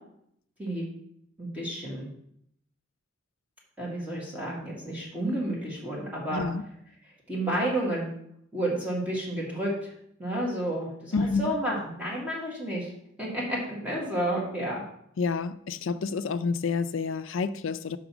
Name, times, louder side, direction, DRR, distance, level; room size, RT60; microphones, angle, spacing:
voice 1, 0.6-0.9 1.4-2.1 3.8-6.5 7.3-8.1 8.5-9.9 10.2-12.9 13.2-14.8, right 1 dB, 5° right, 1.7 m, -31 dB
voice 2, 6.3-6.6 11.1-11.5 15.2-18.0, left 4 dB, 75° left, 0.4 m, -29 dB
5.7 x 5.1 x 6.0 m
head